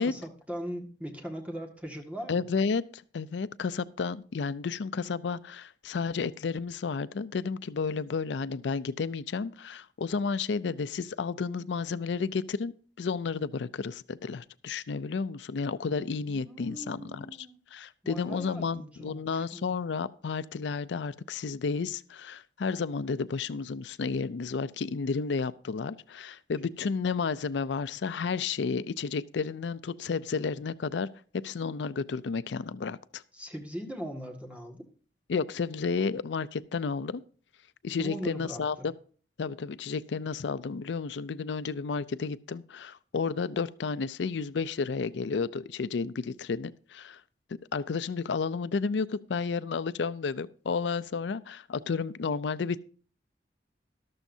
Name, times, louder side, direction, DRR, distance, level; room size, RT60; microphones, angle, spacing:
voice 1, 0.0-2.5 16.3-17.6 18.0-19.7 33.3-34.8 38.0-38.9, equal, 10° right, 2 dB, 1.8 m, -40 dB
voice 2, 2.3-31.1 31.3-33.2 35.3-37.2 37.8-38.9 39.4-47.2 47.7-52.8, left 5 dB, 80° left, 15 dB, 0.4 m, -32 dB
13.0 x 12.5 x 2.7 m, 0.42 s
head